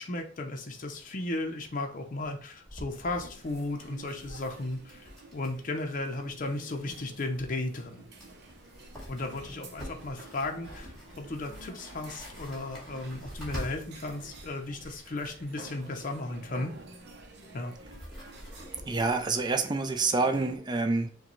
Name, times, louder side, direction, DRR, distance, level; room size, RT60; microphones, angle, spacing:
voice 1, 0.0-8.1 9.1-16.7 17.5-17.7, left 2 dB, 45° left, 3 dB, 0.6 m, -35 dB
sound 1, 1.2-1.3 1.6-1.8 2.2-5.7 6.0-6.1 7.8-7.9 8.1-14.5 16.3-20.0, equal, ahead, 2.1 m, -46 dB
sound 2, 2.9-20.6, right 2 dB, 60° right, 0.7 m, -50 dB
voice 2, 18.8-21.1, right 3 dB, 25° right, 6 dB, 0.4 m, -27 dB
6.4 x 2.3 x 3.0 m, 0.43 s
head